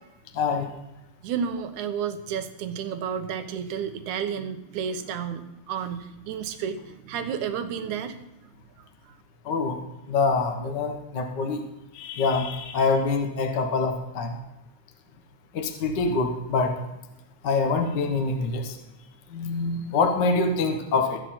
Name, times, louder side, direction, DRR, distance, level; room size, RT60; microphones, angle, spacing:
voice 1, 0.3-0.7 9.4-9.8 10.1-11.6 11.9-14.4 15.5-16.7 17.4-18.8 19.3-21.2, left 4 dB, 50° left, 4 dB, 1.4 m, -25 dB
voice 2, 1.2-8.2 8.8-9.2, right 7 dB, 75° right, 9 dB, 2.4 m, -31 dB
21.5 x 8.7 x 4.4 m, 0.97 s
omnidirectional pair, 3.6 m